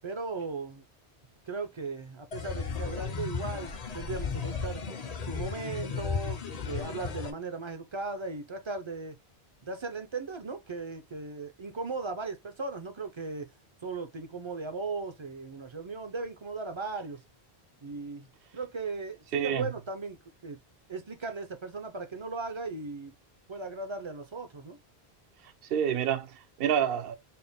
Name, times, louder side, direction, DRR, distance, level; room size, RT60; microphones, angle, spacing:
voice 1, 0.0-0.8 1.5-4.8 5.2-9.2 9.6-13.5 13.8-17.2 17.8-18.3 18.5-20.6 20.9-23.1 23.5-24.8, right 3 dB, 40° right, 0.4 m, -37 dB
sound 1, 2.3-7.3, left 6 dB, 45° left, 0.6 m, -35 dB
voice 2, 19.3-19.7 25.7-27.2, right 9 dB, 70° right, 0.8 m, -28 dB
4.2 x 2.1 x 3.4 m
omnidirectional pair, 1.1 m